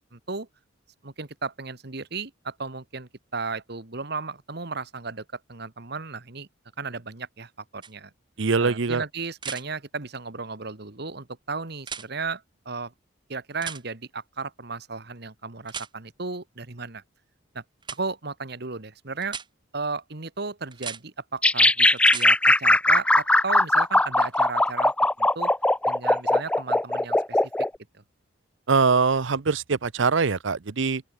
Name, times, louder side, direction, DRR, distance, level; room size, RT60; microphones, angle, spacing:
voice 1, 0.1-0.5 1.0-6.5 6.8-8.1 8.6-12.9 13.3-17.0 17.5-17.6 17.9-19.4 19.7-25.5 25.8-27.4 27.9-28.0, right 4 dB, 55° right, 1.5 m, -34 dB
sound 1, 7.8-7.9 9.4-9.6 11.8-12.1 13.6-13.8 15.7-15.9 17.8-18.0 19.2-19.5 20.7-21.0 22.0-22.3 24.3-24.4, right 6 dB, 25° right, 2.6 m, -36 dB
voice 2, 8.4-9.0 28.7-31.0, right 4 dB, 70° right, 0.7 m, -22 dB
sound 2, 21.4-27.7, left 1 dB, 5° left, 0.5 m, -20 dB
open air
head